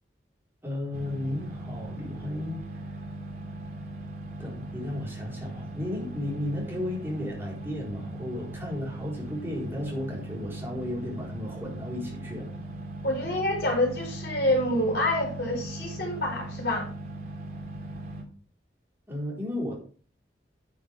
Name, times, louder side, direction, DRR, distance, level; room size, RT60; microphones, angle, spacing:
voice 1, 0.6-2.6 4.4-12.5 19.1-19.8, left 1 dB, 15° right, -4 dB, 4.3 m, -34 dB
sound 1, 0.9-18.2, right 2 dB, 55° right, 2.5 m, -39 dB
voice 2, 13.0-16.9, left 1 dB, 65° left, 0 dB, 4.6 m, -27 dB
10.0 x 8.7 x 3.5 m, 0.41 s
head